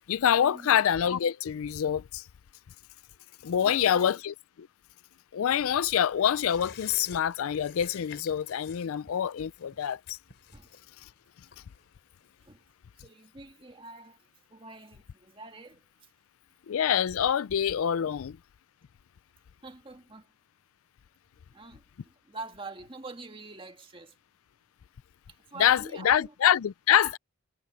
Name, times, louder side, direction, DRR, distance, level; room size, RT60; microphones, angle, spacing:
voice 1, 0.1-2.2 3.4-4.7 5.3-10.2 16.7-18.4 25.6-27.2, left 9 dB, 75° left, 0.4 m, -26 dB
voice 2, 3.6-4.2 10.5-10.7 12.4-12.6 13.0-16.1 18.0-18.1 19.6-20.3 21.5-24.2 25.3-26.3, right 3 dB, 25° right, 2.0 m, -45 dB
sound 1, 5.6-12.7 13.0-13.1, left 6 dB, 50° left, 4.2 m, -51 dB
head